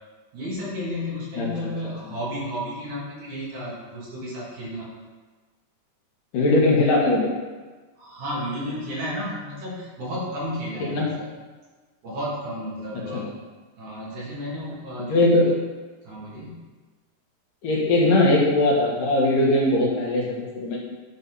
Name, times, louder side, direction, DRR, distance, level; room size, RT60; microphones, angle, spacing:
voice 1, 0.3-4.9 8.0-11.2 12.0-13.3 13.8-15.1 15.4-15.5 16.0-16.6, equal, 65° right, -7 dB, 3.8 m, -32 dB
voice 2, 6.3-7.3 10.9-11.1 13.1-13.2 15.1-15.5 17.6-20.8, left 2 dB, 80° left, -3 dB, 3.2 m, -20 dB
9.9 x 4.3 x 5.4 m, 1.3 s
omnidirectional pair, 3.7 m